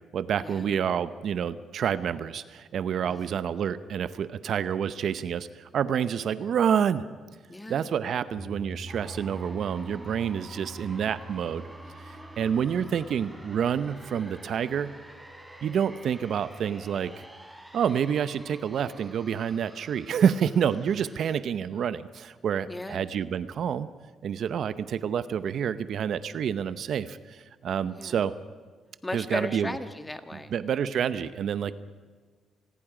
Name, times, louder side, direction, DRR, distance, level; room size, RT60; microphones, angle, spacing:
voice 1, 0.1-7.0 7.7-11.7 12.0-14.9 15.6-17.3 17.7-23.9 24.2-28.3 29.1-29.8 30.3-31.7, right 8 dB, 65° right, 14 dB, 0.7 m, -28 dB
voice 2, 7.5-7.9 22.7-23.1 28.0-28.2 29.0-30.5, left 1 dB, 15° left, 9 dB, 1.6 m, -36 dB
sound 1, 8.3-18.6, right 1 dB, 30° left, 3.1 m, -47 dB
sound 2, 8.9-21.4, right 1 dB, 10° right, 3.5 m, -48 dB
27.5 x 20.0 x 5.0 m, 1.5 s
cardioid pair, 90°, 0 cm